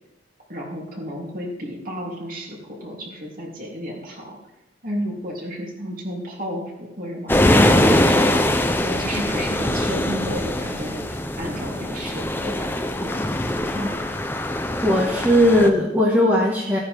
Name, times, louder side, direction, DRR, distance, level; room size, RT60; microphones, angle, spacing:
voice 1, 0.5-4.4 4.8-8.4 8.8-12.7 13.0-13.3, equal, 45° right, -2 dB, 3.1 m, -32 dB
sound 1, 7.3-15.7, left 1 dB, 10° left, 0.6 m, -22 dB
voice 2, 14.8-16.8, left 1 dB, 10° right, -4 dB, 1.5 m, -18 dB
16.0 x 9.6 x 3.6 m, 0.95 s
head